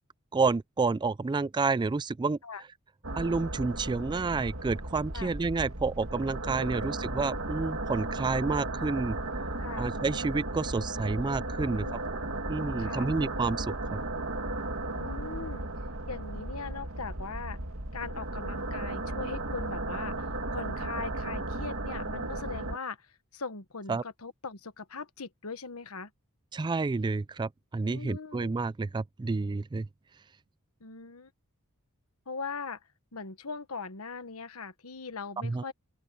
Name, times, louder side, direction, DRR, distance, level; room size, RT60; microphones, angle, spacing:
voice 1, 0.3-2.4 3.2-9.2 9.8-11.9 12.5-14.0 23.9-24.0 26.5-29.9 35.4-35.7, right 4 dB, 20° right, 0.3 m, -29 dB
sound 1, 3.0-22.8, right 2 dB, 65° right, 2.3 m, -35 dB
voice 2, 11.7-12.0 12.8-13.1 14.9-15.6 16.1-17.6 17.9-23.0 23.3-26.1 27.8-28.5 30.8-31.3 32.3-32.8 33.1-35.7, left 4 dB, 70° left, 1.3 m, -40 dB
open air
head